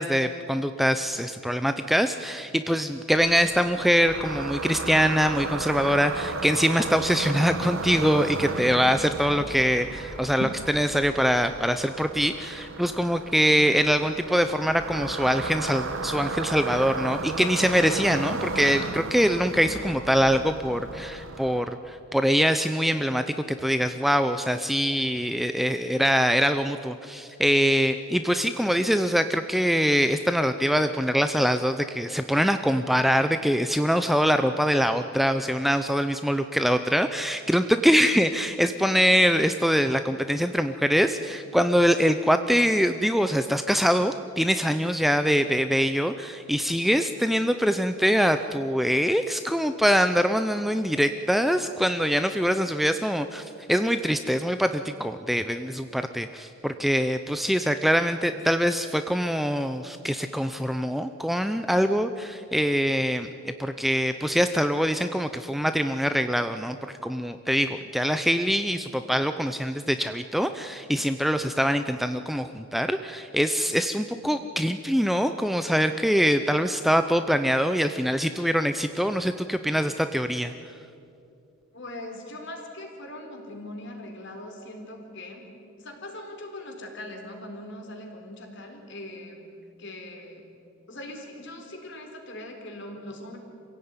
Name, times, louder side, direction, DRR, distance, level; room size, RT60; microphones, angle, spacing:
voice 1, 0.0-23.3 23.6-66.8 67.0-80.5, equal, ahead, 8 dB, 0.5 m, -24 dB
sound 1, 3.1-21.6, right 3 dB, 65° right, 1.4 m, -34 dB
voice 2, 81.7-85.5 85.8-89.5 89.8-90.4 90.9-93.4, left 1 dB, 55° left, 3 dB, 4.1 m, -40 dB
26.5 x 16.5 x 9.7 m, 2.6 s
head